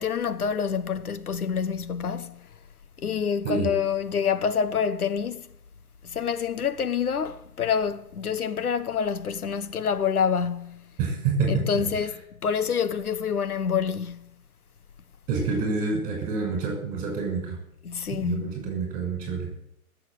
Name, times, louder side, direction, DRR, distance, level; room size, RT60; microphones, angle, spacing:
voice 1, 0.0-2.4 3.0-5.4 6.0-10.8 11.5-12.1 12.4-14.2 17.8-18.5, left 7 dB, 80° left, 1.2 m, -27 dB
voice 2, 11.0-11.8 15.3-17.6 18.1-19.5, right 4 dB, 20° right, 6.4 m, -27 dB
17.0 x 7.8 x 9.1 m
hypercardioid pair, 155°, 44 cm